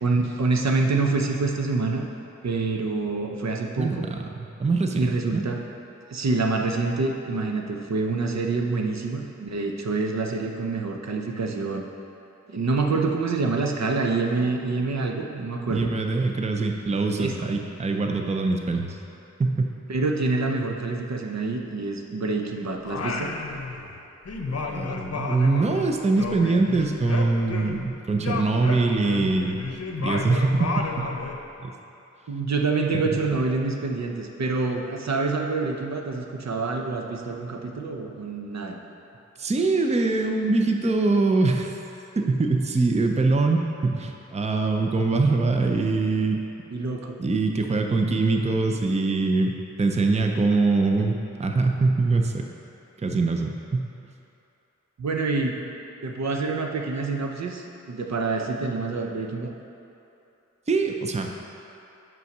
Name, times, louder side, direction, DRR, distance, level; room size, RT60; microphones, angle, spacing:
voice 1, 0.0-2.1 2.4-4.1 4.9-5.6 6.1-11.8 12.5-15.9 17.2-17.5 19.9-23.3 32.3-38.8 46.7-47.2 55.0-55.7 56.0-59.5, right 3 dB, 65° right, 2 dB, 0.7 m, -26 dB
voice 2, 3.8-5.4 15.7-19.0 19.4-19.7 24.5-29.6 30.0-31.2 31.6-31.7 32.9-33.0 39.4-41.8 42.1-46.4 47.2-49.5 49.8-52.5 53.0-53.9 60.7-61.3, right 3 dB, 20° right, 3 dB, 0.5 m, -23 dB
Singing, 22.8-24.0 24.3-27.9 28.2-31.4, left 4 dB, 55° left, 0.7 m, -32 dB
5.6 x 5.4 x 5.9 m, 2.8 s
wide cardioid pair, 65°, 30 cm